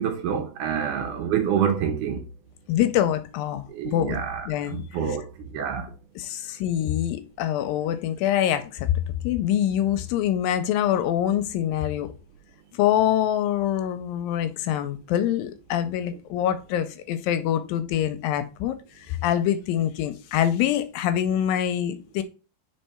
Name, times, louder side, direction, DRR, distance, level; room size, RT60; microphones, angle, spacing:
voice 1, 0.0-2.2 3.7-5.9, right 7 dB, 70° right, 2.1 m, -27 dB
voice 2, 2.7-4.2 4.5-4.8 6.2-8.9 9.2-12.1 12.7-22.2, left 11 dB, 80° left, 2.2 m, -25 dB
5.0 x 4.5 x 4.2 m
omnidirectional pair, 4.2 m